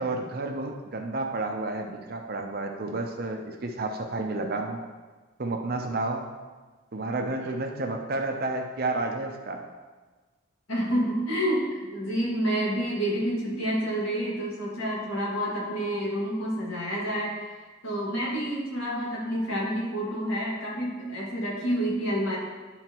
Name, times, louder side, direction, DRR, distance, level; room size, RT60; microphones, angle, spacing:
voice 1, 0.0-4.8 5.4-6.3 6.9-9.6, right 2 dB, 45° right, 3 dB, 0.6 m, -31 dB
voice 2, 10.7-17.3 17.8-22.4, equal, 70° left, -5 dB, 2.0 m, -28 dB
10.5 x 3.9 x 3.0 m, 1.3 s
head